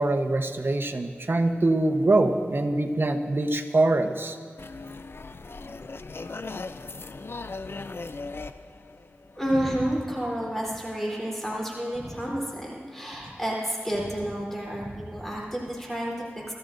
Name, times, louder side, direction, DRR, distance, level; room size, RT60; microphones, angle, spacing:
voice 1, 0.0-4.4, right 2 dB, 55° right, 6 dB, 1.0 m, -24 dB
sound 1, 4.6-9.7, left 3 dB, 60° left, 0.5 m, -38 dB
voice 2, 9.3-16.5, equal, 5° left, -4 dB, 3.7 m, -30 dB
23.5 x 13.5 x 2.6 m, 2.1 s
wide cardioid pair, 50°, 5 cm